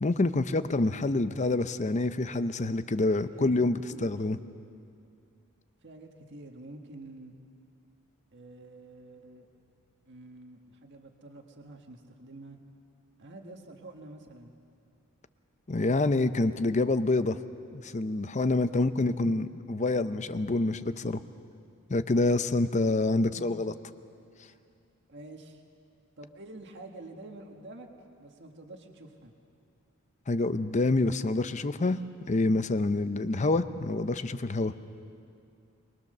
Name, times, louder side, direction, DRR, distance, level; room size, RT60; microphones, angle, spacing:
voice 1, 0.0-4.4 15.7-17.4 17.8-21.2 21.9-23.7 30.3-32.0 32.3-34.7, left 2 dB, 35° left, 12 dB, 0.6 m, -27 dB
voice 2, 3.3-3.6 3.9-4.2 4.5-4.6 5.8-7.3 8.3-9.5 10.1-12.6 13.2-14.5 19.1-19.3 23.2-23.6 24.4-24.6 25.1-25.6 26.2-27.9 28.2-29.3, right 2 dB, 55° right, 3 dB, 1.7 m, -48 dB
23.5 x 21.5 x 6.7 m, 2.5 s
head